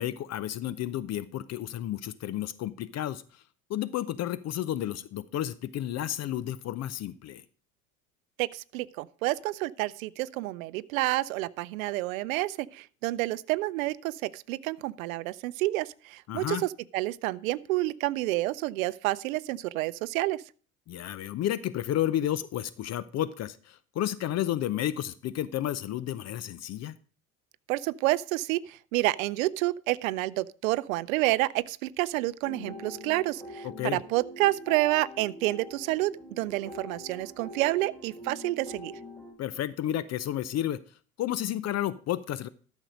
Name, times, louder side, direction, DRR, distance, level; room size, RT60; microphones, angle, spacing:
voice 1, 0.0-3.4 3.7-7.4 16.3-16.6 20.9-26.9 33.6-34.0 39.4-40.8 41.2-42.5, left 12 dB, 40° left, 0.7 m, -31 dB
voice 2, 8.4-20.4 27.7-38.9, right 18 dB, 70° right, 0.6 m, -29 dB
sound 1, 32.4-39.3, left 1 dB, 5° left, 3.8 m, -44 dB
13.0 x 6.3 x 5.0 m
hypercardioid pair, 75°, 42 cm